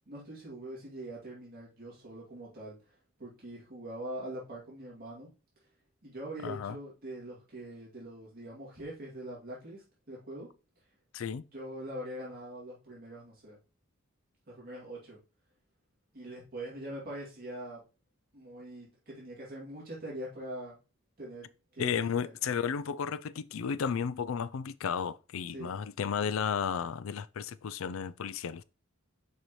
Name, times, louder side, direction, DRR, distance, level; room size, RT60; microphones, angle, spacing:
voice 1, 0.1-5.3 6.0-10.5 11.5-13.6 14.5-15.2 16.1-17.8 18.3-20.8 21.2-21.5 21.7-22.3 25.5-25.7, right 1 dB, 45° right, 2.5 m, -43 dB
voice 2, 6.4-6.8 11.1-11.4 21.8-28.6, left 7 dB, 75° left, 0.4 m, -33 dB
6.7 x 4.9 x 3.1 m
head